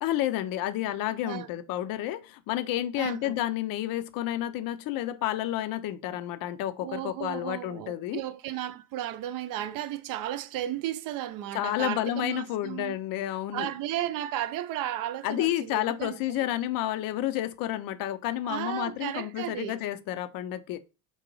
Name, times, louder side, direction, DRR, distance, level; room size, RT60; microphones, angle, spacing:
voice 1, 0.0-8.2 11.5-13.7 15.2-20.8, left 13 dB, 60° left, 0.5 m, -30 dB
voice 2, 2.9-3.3 6.8-13.0 13.5-16.5 18.4-19.8, right 12 dB, 60° right, 0.5 m, -34 dB
3.9 x 2.2 x 3.0 m
supercardioid pair, 90°, 39 cm